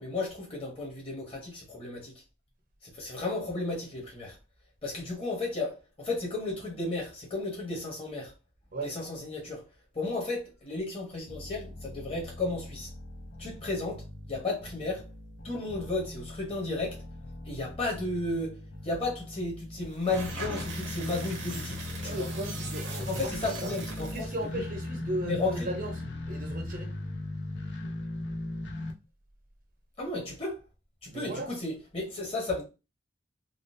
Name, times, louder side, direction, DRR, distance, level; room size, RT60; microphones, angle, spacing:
voice 1, 0.0-2.1 2.8-4.4 4.8-8.3 8.8-9.7 9.9-12.9 13.4-15.1 15.4-17.0 17.4-22.3 22.9-24.6 25.2-25.6 30.0-30.6 31.0-32.6, left 2 dB, 30° left, 1.1 m, -34 dB
sound 1, 11.3-28.9, left 1 dB, 75° left, 0.6 m, -39 dB
sound 2, 19.9-24.4, right 3 dB, 90° right, 0.9 m, -41 dB
voice 2, 22.0-23.7 24.1-25.9 26.3-27.0 31.1-31.5, right 1 dB, 45° right, 0.6 m, -36 dB
3.7 x 2.0 x 2.6 m
head